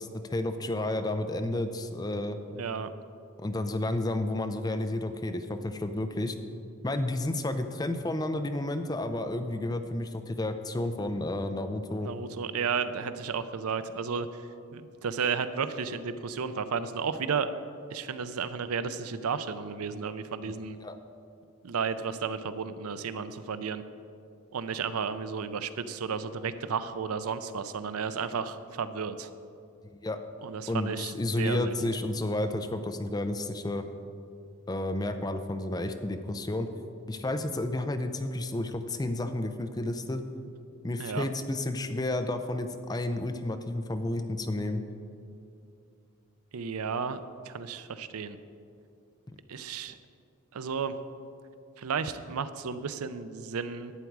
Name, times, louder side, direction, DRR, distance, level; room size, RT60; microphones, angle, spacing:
voice 1, 0.0-2.4 3.4-6.4 6.8-12.1 20.4-20.5 20.8-21.0 30.0-30.2 30.7-33.8 34.7-36.7 37.1-40.2 40.8-44.8, left 1 dB, 20° left, 7 dB, 0.4 m, -31 dB
voice 2, 2.5-2.9 12.0-14.4 14.7-17.5 17.9-20.8 21.6-23.8 24.5-29.3 30.4-31.9 41.0-41.3 46.5-48.4 49.5-50.0 50.5-51.0 51.8-53.9, right 6 dB, 85° right, 12 dB, 0.5 m, -33 dB
11.5 x 8.2 x 4.7 m, 2.5 s
head